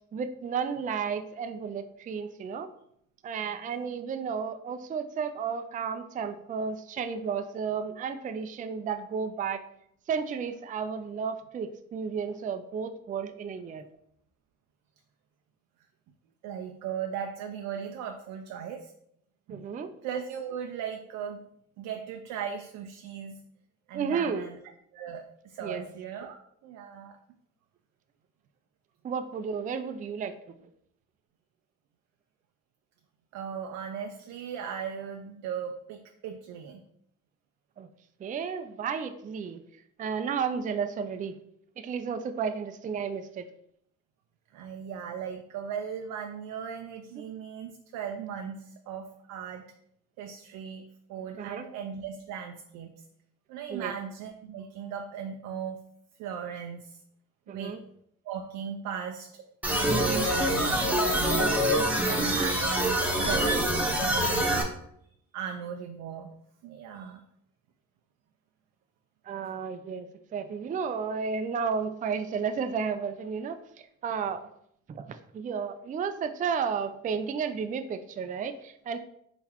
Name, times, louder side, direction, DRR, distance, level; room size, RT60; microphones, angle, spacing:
voice 1, 0.1-2.7 3.2-9.6 10.1-13.9 19.5-19.9 23.9-24.5 25.6-25.8 29.0-30.3 37.8-37.9 38.2-39.6 40.0-41.4 41.8-43.5 51.4-51.7 53.7-53.9 57.5-57.8 61.4-61.6 69.3-73.6 74.0-74.4 74.9-79.0, right 6 dB, 30° right, 9 dB, 0.3 m, -32 dB
voice 2, 16.4-18.9 19.5-19.7 20.0-21.4 21.8-23.4 23.9-24.6 24.9-27.2 33.3-36.8 44.5-49.6 50.2-53.0 53.5-55.8 56.2-57.0 57.5-57.8 58.2-61.5 62.0-64.7 65.3-66.3 66.6-67.2, right 7 dB, 90° right, 5 dB, 0.5 m, -37 dB
sound 1, 59.6-64.6, right 1 dB, 5° right, 0.9 m, -25 dB
4.2 x 3.9 x 2.9 m, 0.72 s
cardioid pair, 90°, 30 cm